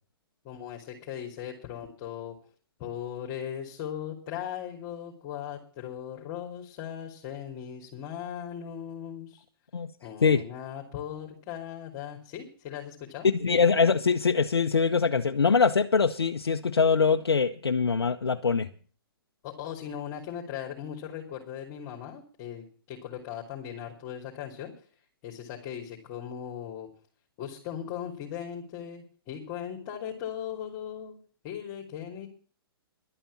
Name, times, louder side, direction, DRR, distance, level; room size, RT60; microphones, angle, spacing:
voice 1, 0.4-2.4 2.8-9.4 10.0-13.3 19.4-24.7 25.2-26.9 27.4-31.2 31.4-32.3, left 9 dB, 35° left, 3.1 m, -38 dB
voice 2, 13.2-18.7, left 5 dB, 85° left, 0.8 m, -23 dB
12.0 x 8.9 x 8.6 m
hypercardioid pair, 130°, 13 cm